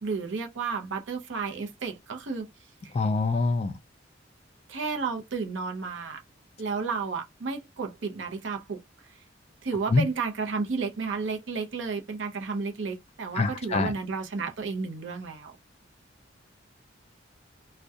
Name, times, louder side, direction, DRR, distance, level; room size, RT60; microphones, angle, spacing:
voice 1, 0.0-2.5 2.8-3.0 4.7-6.2 6.6-9.2 9.6-15.6, right 4 dB, 75° right, 0.6 m, -32 dB
voice 2, 2.9-3.8 9.9-10.0 13.4-13.9, left 3 dB, 35° left, 0.3 m, -24 dB
2.3 x 2.1 x 2.6 m
head